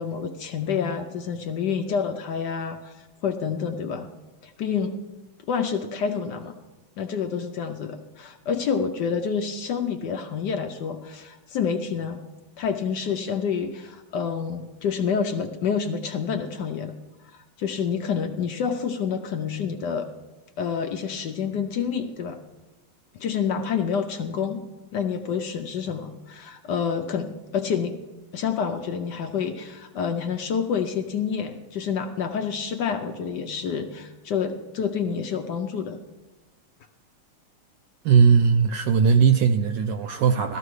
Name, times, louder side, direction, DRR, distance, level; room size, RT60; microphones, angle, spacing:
voice 1, 0.0-4.1 4.4-4.9 5.5-6.5 7.0-12.2 12.6-16.9 17.2-20.1 20.6-22.4 23.1-24.6 24.9-28.0 28.3-36.0, left 6 dB, 70° left, 6 dB, 1.1 m, -28 dB
voice 2, 38.0-40.6, right 6 dB, 75° right, 7 dB, 1.0 m, -19 dB
17.0 x 13.0 x 3.2 m, 1.1 s
omnidirectional pair, 2.3 m